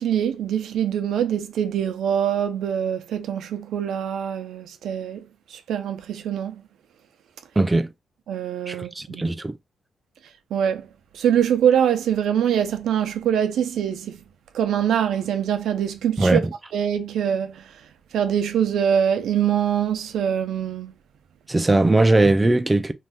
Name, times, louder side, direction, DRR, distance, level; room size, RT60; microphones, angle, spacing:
voice 1, 0.0-6.6 8.3-9.2 10.5-10.9 11.1-14.2 14.5-16.4 16.7-17.9 18.1-20.9, right 9 dB, 85° right, 0.4 m, -24 dB
voice 2, 7.6-7.9 8.7-9.6 16.2-16.5 21.5-22.9, right 2 dB, 20° right, 0.4 m, -19 dB
2.7 x 2.3 x 3.3 m
cardioid pair, 100°, 0 cm